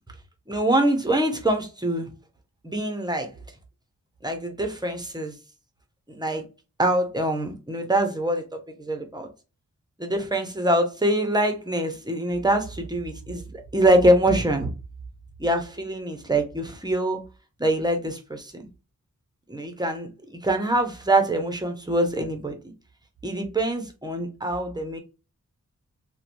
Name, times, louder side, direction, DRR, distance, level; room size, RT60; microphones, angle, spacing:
voice 1, 0.5-2.1 2.6-3.3 4.2-5.3 6.1-6.4 6.8-8.4 8.8-9.3 10.0-14.7 15.4-17.2 17.6-18.6 19.5-22.6 23.2-25.0, right 1 dB, 15° right, 0.7 m, -24 dB
3.0 x 2.2 x 2.6 m
cardioid pair, 70°, 32 cm